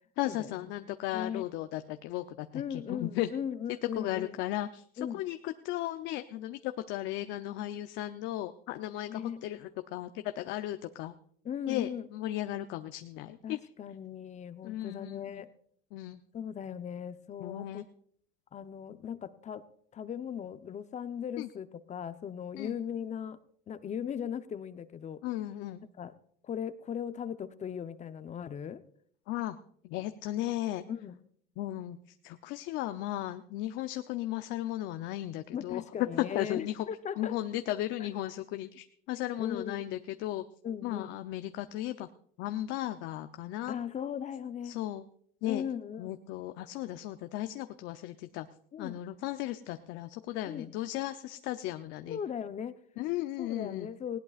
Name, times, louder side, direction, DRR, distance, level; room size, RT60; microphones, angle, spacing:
voice 1, 0.2-3.3 4.0-11.1 11.7-13.6 14.6-15.4 15.9-16.2 17.4-17.8 21.4-21.5 22.6-22.8 25.2-25.8 29.3-29.6 29.8-30.8 31.6-35.8 36.2-36.9 37.2-40.4 40.8-42.1 42.4-43.7 44.6-45.0 45.4-45.6 46.0-48.5 48.8-52.2 53.0-53.9, left 14 dB, 65° left, 9 dB, 0.7 m, -36 dB
voice 2, 1.1-1.4 2.5-4.4 5.0-5.2 9.1-9.4 11.4-12.1 13.4-15.5 16.3-17.8 18.5-19.6 19.9-23.4 23.7-25.2 26.0-26.1 26.4-28.8 30.9-31.2 35.5-37.3 39.4-39.8 40.6-41.1 43.7-44.8 45.4-46.2 48.7-49.0 50.5-50.7 52.1-52.8 53.4-54.2, left 8 dB, 35° left, 11 dB, 0.9 m, -38 dB
19.0 x 17.0 x 2.5 m, 0.63 s
supercardioid pair, 90°, 20 cm